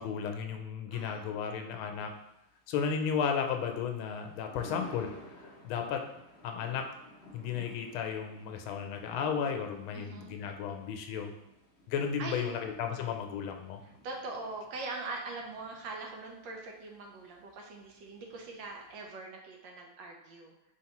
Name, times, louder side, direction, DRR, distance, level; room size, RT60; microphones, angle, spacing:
voice 1, 0.0-2.1 2.7-5.1 5.4-6.0 6.4-6.9 7.3-11.3 11.9-13.8, left 7 dB, 85° left, 4 dB, 1.4 m, -34 dB
voice 2, 0.9-2.1 9.9-10.4 12.2-13.0 14.0-20.5, right 3 dB, 75° right, 1 dB, 1.3 m, -43 dB
Thunder, 2.0-19.0, equal, 70° left, 0.6 m, -55 dB
4.5 x 3.4 x 2.9 m, 0.90 s
omnidirectional pair, 2.2 m